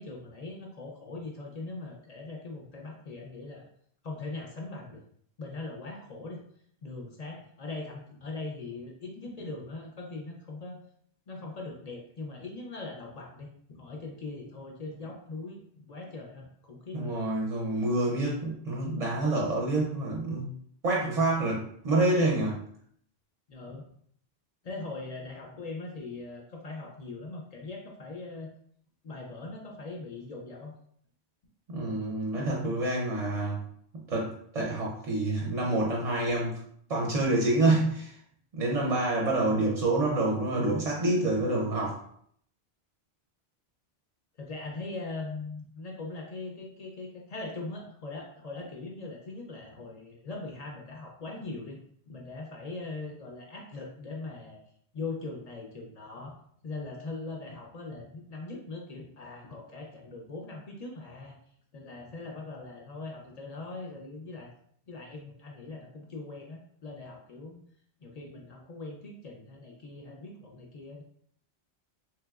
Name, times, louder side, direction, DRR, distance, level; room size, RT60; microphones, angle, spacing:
voice 1, 0.0-3.7 4.0-5.0 5.4-6.4 6.8-10.8 11.3-15.6 15.8-17.2 23.5-23.8 24.6-28.5 29.0-30.7 38.9-39.4 44.4-51.8 52.1-54.6 54.9-56.4 56.6-61.4 61.7-64.5 64.9-67.6 68.0-71.0, left 3 dB, 55° left, 0 dB, 0.4 m, -41 dB
voice 2, 16.9-20.5 20.8-22.6 31.7-33.6 33.9-36.6 36.9-38.2 38.5-42.0, right 2 dB, 50° right, -2 dB, 0.5 m, -27 dB
3.2 x 2.9 x 2.3 m, 0.64 s
omnidirectional pair, 1.1 m